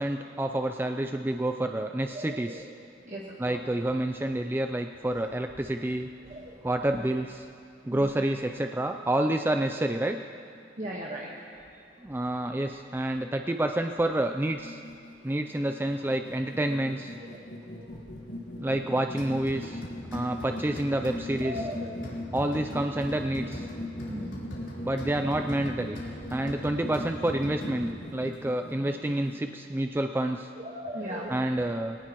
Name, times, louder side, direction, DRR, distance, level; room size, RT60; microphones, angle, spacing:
voice 1, 0.0-2.7 3.4-6.1 6.6-7.5 7.9-10.2 12.0-14.8 15.2-17.2 18.6-19.8 20.1-21.7 22.3-23.7 24.8-26.0 26.3-30.5 31.3-32.0, right 1 dB, 10° right, 5 dB, 0.4 m, -28 dB
voice 2, 2.2-2.5 3.1-3.2 3.5-3.6 6.3-6.5 7.9-8.0 10.8-11.3 17.8-17.9 21.4-21.9 24.1-24.5 30.6-31.3, equal, 40° right, -3 dB, 1.3 m, -37 dB
sound 1, 14.3-29.4, left 1 dB, 55° left, 1.9 m, -41 dB
sound 2, 19.2-28.1, equal, 75° left, 3.7 m, -40 dB
22.0 x 18.0 x 3.0 m, 2.4 s
head